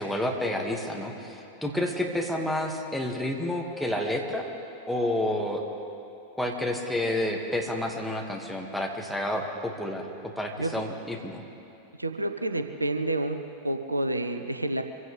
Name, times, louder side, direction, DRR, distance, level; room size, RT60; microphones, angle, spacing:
voice 1, 0.0-4.5 4.9-5.6 6.4-10.1 10.4-11.4, left 1 dB, ahead, 0 dB, 2.0 m, -29 dB
voice 2, 12.0-13.4 13.6-14.8, right 1 dB, 85° right, 7 dB, 0.7 m, -29 dB
25.0 x 16.0 x 3.4 m, 2.7 s
figure-of-eight pair, 90°, 0 cm